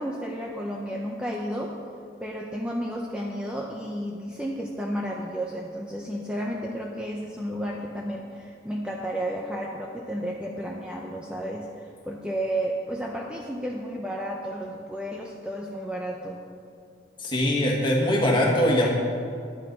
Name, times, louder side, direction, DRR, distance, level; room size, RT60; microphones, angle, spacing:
voice 1, 0.0-1.7 2.2-11.7 12.0-16.4, equal, 5° right, -2 dB, 0.7 m, -32 dB
voice 2, 17.2-18.9, left 1 dB, 25° left, -2 dB, 1.9 m, -22 dB
11.5 x 9.0 x 5.4 m, 2.4 s
head